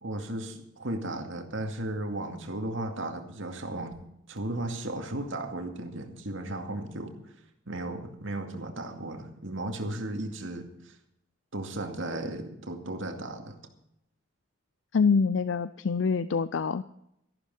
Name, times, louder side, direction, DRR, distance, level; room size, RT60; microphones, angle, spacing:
voice 1, 0.0-3.9 4.3-7.1 7.7-11.0 11.5-13.6, right 1 dB, 70° right, 5 dB, 2.3 m, -35 dB
voice 2, 14.9-16.8, left 5 dB, 65° left, 15 dB, 0.4 m, -25 dB
13.5 x 12.0 x 5.5 m, 0.78 s
head